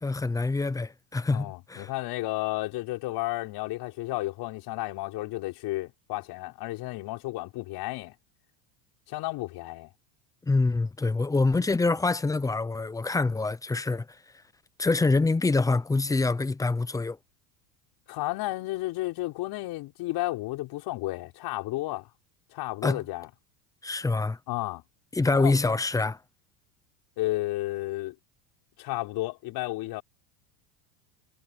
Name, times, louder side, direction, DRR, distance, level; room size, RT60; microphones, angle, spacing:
voice 1, 0.0-1.9 10.4-14.1 14.8-17.2 22.8-23.0 23.8-24.4 25.1-26.2, left 3 dB, 5° left, 0.7 m, -25 dB
voice 2, 1.3-8.1 9.1-9.9 18.1-22.1 22.5-23.3 24.5-24.8 25.3-25.5 27.2-28.1 28.8-30.0, left 18 dB, 55° left, 6.2 m, -32 dB
supercardioid pair, 130°, 47 cm